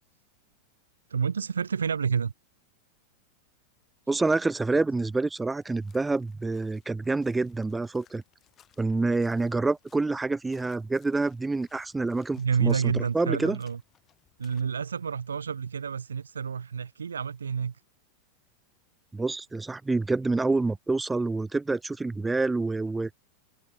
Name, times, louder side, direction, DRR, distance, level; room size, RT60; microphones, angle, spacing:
voice 1, 1.1-2.3 12.4-13.8 14.4-17.8, right 6 dB, 70° right, 0.3 m, -29 dB
voice 2, 4.1-8.2 8.8-13.6 19.1-23.1, right 3 dB, 10° right, 0.6 m, -27 dB
sound 1, 5.6-14.6, left 9 dB, 25° left, 5.3 m, -64 dB
figure-of-eight pair, 90°, 0 cm